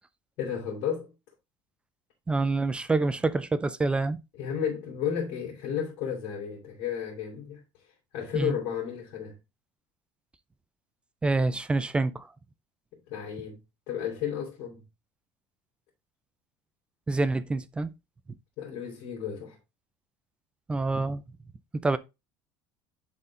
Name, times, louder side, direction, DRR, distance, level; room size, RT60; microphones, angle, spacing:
voice 1, 0.4-1.1 4.4-7.6 8.1-9.4 13.1-13.6 13.9-14.8 18.6-19.6, left 8 dB, 65° left, 3.8 m, -33 dB
voice 2, 2.3-4.2 8.3-8.5 11.2-12.3 17.1-17.9 20.7-21.2 21.8-22.0, right 3 dB, 10° right, 0.3 m, -26 dB
10.5 x 4.3 x 3.7 m
cardioid pair, 175°, 11 cm